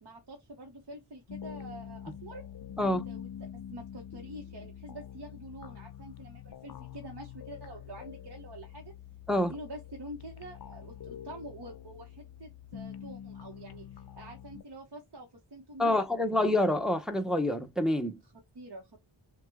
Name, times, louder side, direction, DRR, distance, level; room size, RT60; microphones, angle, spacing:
voice 1, 0.0-2.4 2.8-8.9 9.3-16.1 18.2-19.0, right 1 dB, 55° right, 1.1 m, -47 dB
sound 1, 1.3-14.6, left 9 dB, 50° left, 0.6 m, -45 dB
voice 2, 15.8-18.2, left 1 dB, ahead, 0.6 m, -27 dB
6.4 x 2.2 x 3.4 m
wide cardioid pair, 100°, 48 cm